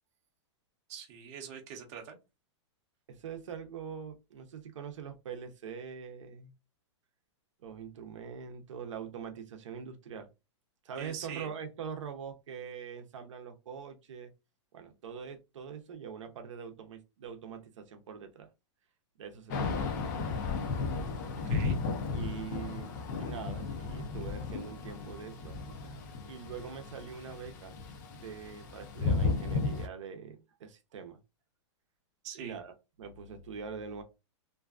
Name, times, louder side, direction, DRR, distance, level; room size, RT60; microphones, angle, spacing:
voice 1, 0.9-2.2 11.0-11.6 21.4-21.8 32.2-32.6, right 8 dB, 30° right, 0.6 m, -43 dB
voice 2, 3.1-6.5 7.6-10.3 10.8-14.3 14.7-18.5 19.2-20.3 22.1-25.6 26.2-27.7 28.1-31.2 32.3-32.7 33.0-34.0, right 7 dB, 85° right, 0.6 m, -43 dB
Thunder / Rain, 19.5-29.9, left 4 dB, 40° left, 0.5 m, -34 dB
2.6 x 2.3 x 2.3 m
supercardioid pair, 165°, 15 cm